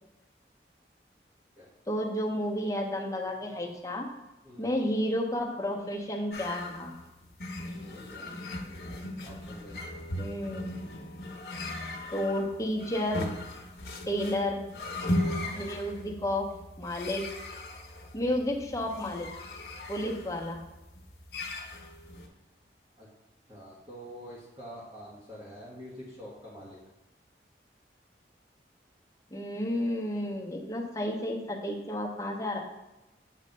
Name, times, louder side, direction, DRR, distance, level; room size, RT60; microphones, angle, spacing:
voice 1, 1.9-4.1 4.6-6.9 10.2-10.7 12.1-13.3 14.1-14.6 15.2-16.5 16.8-17.3 18.1-19.3 19.9-20.6 29.3-32.6, left 1 dB, 20° left, -1 dB, 0.8 m, -31 dB
voice 2, 4.4-4.8 7.9-8.3 9.2-9.8 18.1-18.4 23.0-23.1 23.5-26.8, equal, 30° right, -8 dB, 1.3 m, -46 dB
sound 1, 6.3-22.3, left 1 dB, 55° left, 0.9 m, -38 dB
7.4 x 3.2 x 5.3 m, 1.0 s
head